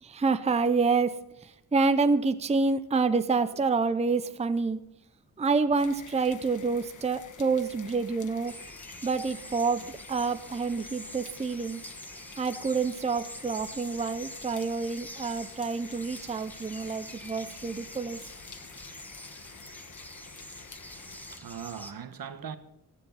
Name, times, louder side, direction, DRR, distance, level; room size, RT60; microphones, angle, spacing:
voice 1, 0.0-4.8 5.4-8.6 9.0-11.8 12.4-18.2, right 4 dB, 20° right, 0.6 m, -28 dB
sound 1, 5.8-21.4, left 6 dB, 55° left, 1.2 m, -49 dB
sound 2, 8.5-21.9, equal, 5° left, 1.2 m, -46 dB
voice 2, 21.0-22.6, right 7 dB, 70° right, 1.3 m, -40 dB
17.5 x 12.5 x 4.1 m
wide cardioid pair, 165°, 36 cm